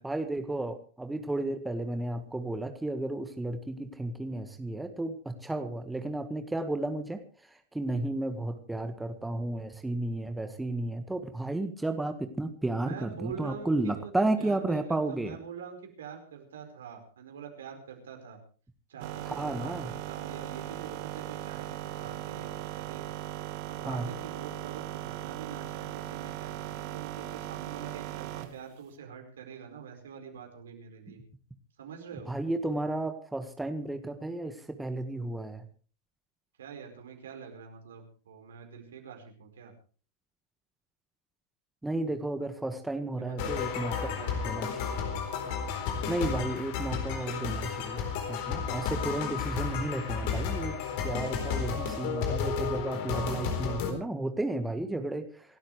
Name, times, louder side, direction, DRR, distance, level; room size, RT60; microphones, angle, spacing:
voice 1, 0.0-7.2 7.7-15.4 19.3-19.9 23.8-24.1 32.3-35.7 41.8-44.7 46.1-55.6, right 2 dB, 5° right, 7 dB, 1.6 m, -33 dB
voice 2, 12.8-14.1 14.4-18.4 18.9-23.0 23.7-31.2 31.8-32.3 36.6-39.7 43.2-45.0 51.5-51.7, right 7 dB, 75° right, 4 dB, 4.8 m, -45 dB
sound 1, 19.0-28.6, right 14 dB, 50° right, 2.0 m, -38 dB
sound 2, 43.4-53.9, left 6 dB, 55° left, 4.1 m, -32 dB
27.5 x 12.5 x 3.3 m, 0.40 s
hypercardioid pair, 100°, 0 cm